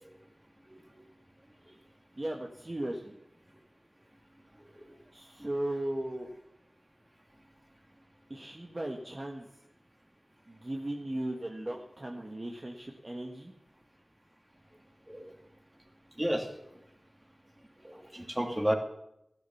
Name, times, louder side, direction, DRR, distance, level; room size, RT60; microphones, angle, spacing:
voice 1, 2.2-3.2 5.1-6.3 8.3-9.5 10.5-13.5, right 1 dB, 35° right, 1 dB, 1.7 m, -37 dB
voice 2, 16.2-16.5 17.8-18.7, equal, 15° right, 4 dB, 2.7 m, -31 dB
15.0 x 11.5 x 7.1 m, 0.80 s
wide cardioid pair, 60°, 0 cm